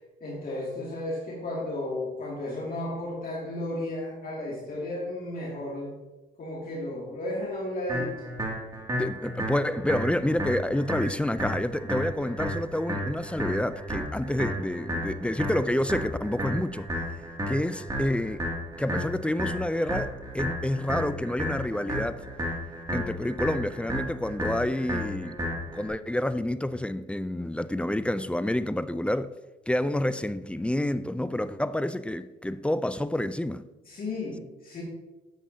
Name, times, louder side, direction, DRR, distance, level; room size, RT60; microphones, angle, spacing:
voice 1, 0.2-5.9 6.4-8.1 33.9-34.8, left 1 dB, 45° left, 2.3 m, -33 dB
sound 1, 7.9-25.9, equal, 20° right, 2.4 m, -33 dB
voice 2, 9.0-16.9 17.5-18.4 18.8-22.2 22.9-25.4 25.7-29.3 29.7-33.6, left 1 dB, 5° left, 0.3 m, -28 dB
10.0 x 7.5 x 2.8 m
cardioid pair, 90°, 20 cm